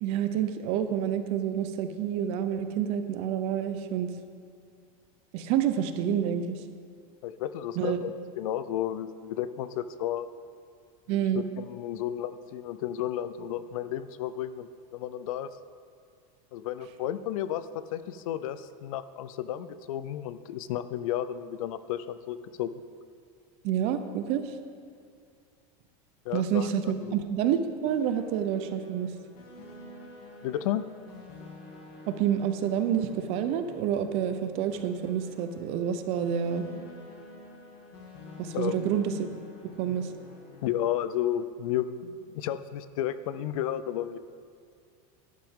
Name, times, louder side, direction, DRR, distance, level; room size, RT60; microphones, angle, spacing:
voice 1, 0.0-4.1 5.3-6.6 7.8-8.1 11.1-11.4 23.6-24.5 26.3-29.1 32.1-36.7 38.4-40.1, right 9 dB, 30° right, 9 dB, 0.5 m, -28 dB
voice 2, 7.2-10.3 11.1-11.2 11.6-15.5 16.5-22.7 26.3-27.2 30.4-30.9 38.5-38.9 40.6-44.2, left 11 dB, 60° left, 14 dB, 0.5 m, -33 dB
sound 1, 27.9-41.4, left 2 dB, 45° left, 2.5 m, -49 dB
12.0 x 11.0 x 3.6 m, 2.3 s
supercardioid pair, 180°, 20 cm